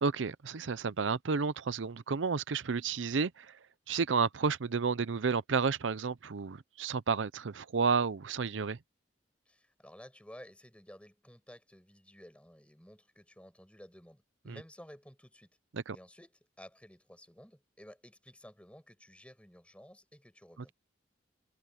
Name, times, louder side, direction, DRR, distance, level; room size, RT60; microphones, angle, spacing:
voice 1, 0.0-3.6 3.9-8.8 14.5-14.6 15.7-16.0, right 5 dB, 90° right, 0.6 m, -31 dB
voice 2, 9.5-15.5 15.9-20.7, equal, 5° left, 7.0 m, -54 dB
head